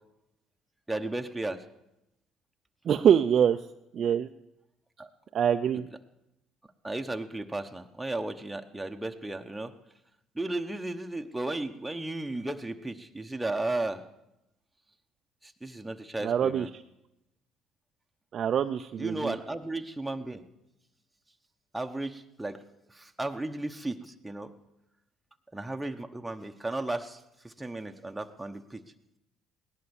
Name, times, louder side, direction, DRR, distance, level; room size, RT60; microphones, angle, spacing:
voice 1, 0.9-1.6 5.0-5.1 6.8-9.7 10.3-14.0 15.4-16.7 19.0-20.4 21.7-22.6 22.9-24.5 25.5-28.8, right 2 dB, 5° right, 4 dB, 1.0 m, -34 dB
voice 2, 2.9-3.6 3.9-4.3 5.3-5.9 16.2-16.7 18.3-19.4, right 8 dB, 50° right, 6 dB, 0.5 m, -24 dB
17.5 x 11.0 x 7.1 m, 0.89 s
supercardioid pair, 90°, 0 cm